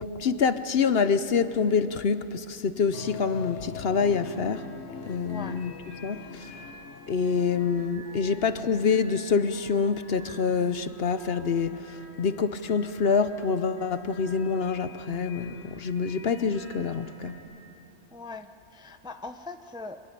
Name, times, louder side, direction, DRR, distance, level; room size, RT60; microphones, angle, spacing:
voice 1, 0.0-4.7 5.1-5.7 6.0-6.5 7.1-17.4, left 5 dB, 55° left, 0.9 m, -26 dB
sound 1, 2.9-7.9, left 8 dB, 75° left, 1.2 m, -42 dB
sound 2, 4.4-17.4, equal, 40° right, 7.0 m, -49 dB
voice 2, 5.2-5.6 18.1-20.0, left 3 dB, 5° right, 0.5 m, -41 dB
25.5 x 19.0 x 10.0 m
omnidirectional pair, 1.3 m